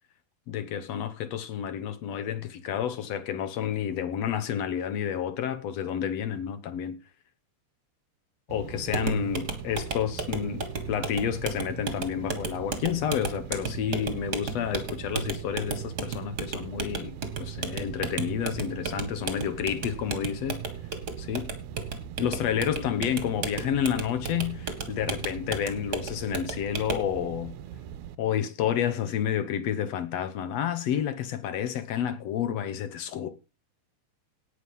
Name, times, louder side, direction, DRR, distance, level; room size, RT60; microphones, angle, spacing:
voice 1, 0.5-7.0 8.5-20.6 21.2-21.5 22.2-27.6 28.2-33.3, left 9 dB, 65° left, 1.8 m, -30 dB
sound 1, 8.5-28.2, right 10 dB, 75° right, 1.9 m, -42 dB
sound 2, 8.9-27.1, right 4 dB, 35° right, 1.7 m, -34 dB
18.0 x 6.5 x 5.5 m
omnidirectional pair, 4.1 m